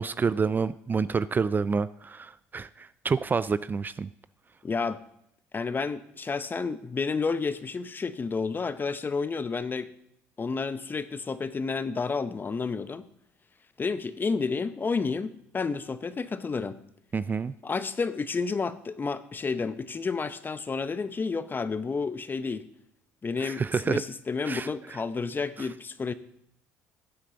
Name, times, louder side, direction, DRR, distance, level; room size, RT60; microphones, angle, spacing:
voice 1, 0.0-4.1 17.1-17.5 23.4-24.0 24.5-24.7, right 5 dB, 30° right, 16 dB, 0.4 m, -28 dB
voice 2, 4.6-5.0 5.5-9.9 10.4-13.1 13.8-16.8 17.6-22.7 23.2-26.1, left 4 dB, 30° left, 13 dB, 0.8 m, -30 dB
14.0 x 8.3 x 3.9 m, 0.74 s
hypercardioid pair, 65°, 7 cm